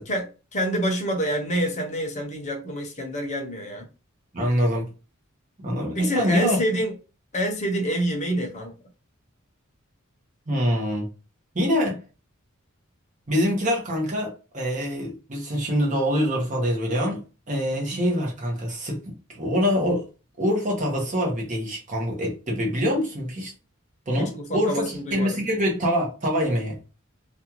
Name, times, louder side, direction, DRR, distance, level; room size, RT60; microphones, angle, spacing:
voice 1, 0.1-3.9 5.9-6.9 7.3-8.7 17.7-17.9 24.2-25.4, equal, 35° left, 0.8 m, -27 dB
voice 2, 4.3-4.9 5.6-6.6 10.5-11.1 11.5-12.0 13.3-20.1 20.4-23.5 24.1-26.8, equal, 35° right, 0.9 m, -25 dB
2.6 x 2.3 x 2.9 m
head